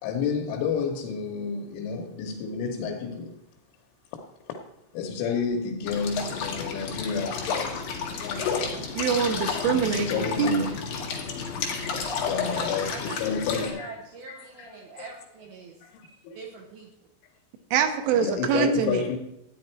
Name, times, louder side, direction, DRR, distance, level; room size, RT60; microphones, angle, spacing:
voice 1, 0.0-3.3 4.5-4.6 4.9-8.8 9.7-11.7 12.2-13.9 14.6-14.7 15.8-16.4 18.2-19.2, left 6 dB, 85° left, 3.5 m, -31 dB
sound 1, 5.9-13.7, left 5 dB, 60° left, 2.9 m, -31 dB
voice 2, 9.0-10.7 17.7-19.0, right 7 dB, 90° right, 3.6 m, -24 dB
voice 3, 12.5-15.8 16.3-16.9, right 4 dB, 70° right, 2.6 m, -43 dB
13.5 x 9.6 x 4.5 m
omnidirectional pair, 5.5 m